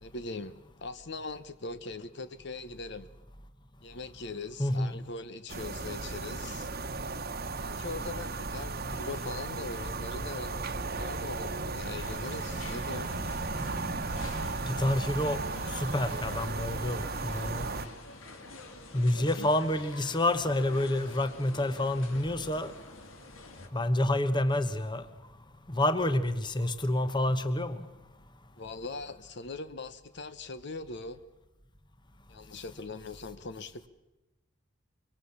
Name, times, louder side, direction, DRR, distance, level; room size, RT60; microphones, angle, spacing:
voice 1, 0.0-3.1 3.8-6.7 7.6-13.2 19.1-19.5 28.6-31.2 32.3-33.9, left 3 dB, 55° left, 1.1 m, -41 dB
voice 2, 4.6-4.9 14.7-15.4 15.7-17.7 18.9-22.7 23.7-25.0 25.7-27.9, left 1 dB, 20° left, 1.1 m, -28 dB
sound 1, 5.5-17.9, right 3 dB, 45° right, 1.2 m, -35 dB
sound 2, 12.0-23.7, left 2 dB, 85° left, 2.8 m, -47 dB
24.5 x 23.5 x 7.2 m
head